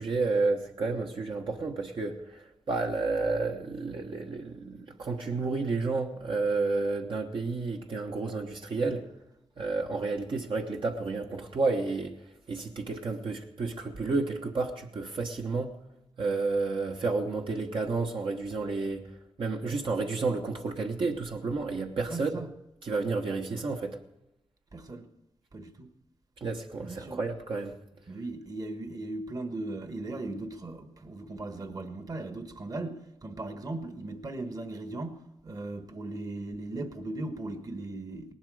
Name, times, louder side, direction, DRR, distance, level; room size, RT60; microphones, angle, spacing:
voice 1, 0.0-9.1 9.6-12.2 12.5-15.7 16.2-19.1 19.4-22.4 22.8-24.0 26.4-27.7, right 3 dB, 60° right, 1.2 m, -31 dB
voice 2, 22.1-22.5 24.7-25.1 25.5-25.9 26.8-27.2 28.1-38.3, right 2 dB, 40° right, 1.4 m, -38 dB
18.5 x 12.0 x 4.9 m
wide cardioid pair, 100°, 10 cm